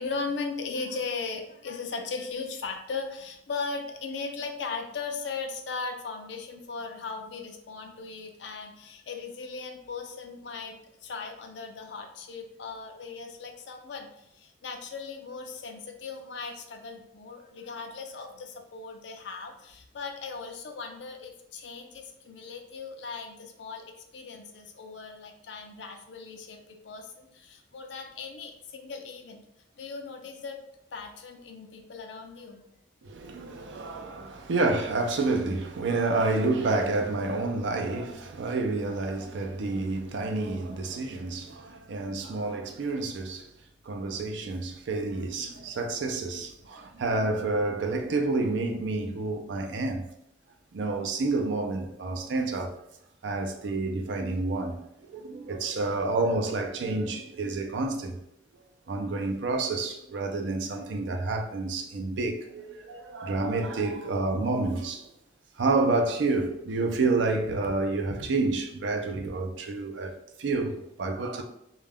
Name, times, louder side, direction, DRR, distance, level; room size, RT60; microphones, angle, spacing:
voice 1, 0.0-23.9 24.1-29.4 29.8-30.6 30.9-32.6, left 4 dB, 75° left, 0.5 m, -38 dB
voice 2, 33.0-43.5 43.8-50.0 50.7-52.7 53.2-58.2 58.9-65.1 65.6-71.4, right 3 dB, 80° right, 0.4 m, -29 dB
2.3 x 2.2 x 3.4 m
head